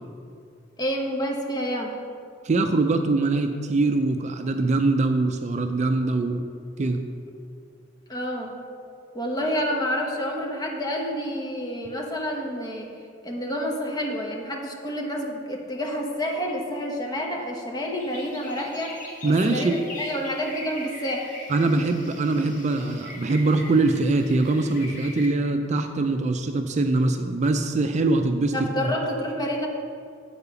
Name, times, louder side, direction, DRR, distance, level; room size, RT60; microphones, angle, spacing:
voice 1, 0.8-1.9 8.1-8.5 9.1-12.9 13.2-19.0 19.3-21.3 28.5-29.7, equal, 20° left, 0 dB, 1.1 m, -29 dB
voice 2, 2.4-6.4 6.8-7.0 19.2-19.8 21.5-28.9, right 2 dB, 40° right, 6 dB, 0.4 m, -23 dB
sound 1, 17.9-25.2, left 2 dB, 45° left, 1.6 m, -41 dB
8.3 x 4.8 x 6.8 m, 2.3 s
head